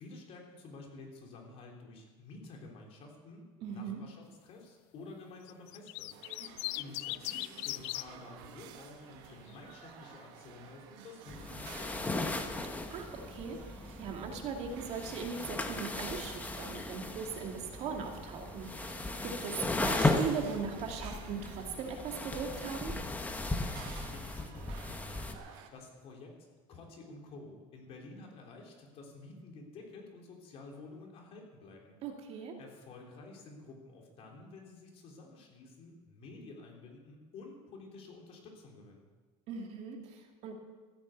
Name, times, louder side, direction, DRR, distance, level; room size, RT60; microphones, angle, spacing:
voice 1, 0.0-6.1 6.4-12.4 23.7-26.4 26.7-32.0 32.6-39.1, left 3 dB, 45° left, 1 dB, 3.4 m, -51 dB
voice 2, 3.6-4.0 6.4-6.5 12.7-22.9 32.0-32.5 39.5-40.5, right 6 dB, 50° right, 3 dB, 2.3 m, -39 dB
sound 1, 5.5-8.1 9.3-9.8, left 21 dB, 80° left, 0.4 m, -38 dB
sound 2, 6.1-25.7, right 8 dB, 75° right, 1.7 m, -53 dB
sound 3, 11.3-25.3, left 2 dB, 10° left, 1.1 m, -36 dB
14.0 x 9.6 x 8.1 m, 1.4 s
cardioid pair, 145°, 14 cm